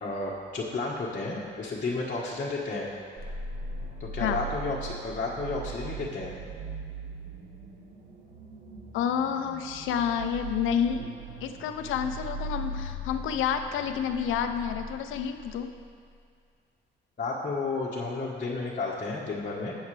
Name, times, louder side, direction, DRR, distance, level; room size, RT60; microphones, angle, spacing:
voice 1, 0.0-2.9 4.0-6.4 17.2-19.7, left 3 dB, 40° left, -6 dB, 1.4 m, -32 dB
sound 1, 3.2-15.8, right 2 dB, 50° right, 1.4 m, -39 dB
voice 2, 8.9-11.1 11.4-15.7, left 8 dB, 90° left, 7 dB, 0.7 m, -29 dB
17.5 x 6.5 x 3.4 m, 2.2 s
cardioid pair, 90°, 20 cm